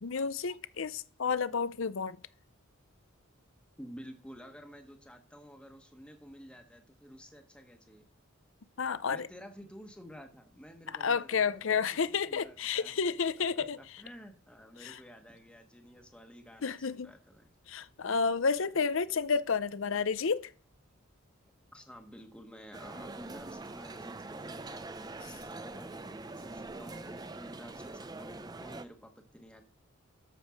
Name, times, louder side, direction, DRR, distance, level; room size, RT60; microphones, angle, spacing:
voice 1, 0.0-2.2 8.8-9.2 11.0-13.8 14.8-15.0 16.6-17.1 17.7-20.5, left 5 dB, 65° left, 0.6 m, -31 dB
voice 2, 3.8-8.1 9.1-17.5 21.7-29.6, equal, 5° left, 1.3 m, -52 dB
sound 1, 22.7-28.8, right 2 dB, 20° right, 0.5 m, -43 dB
13.0 x 5.2 x 6.3 m
head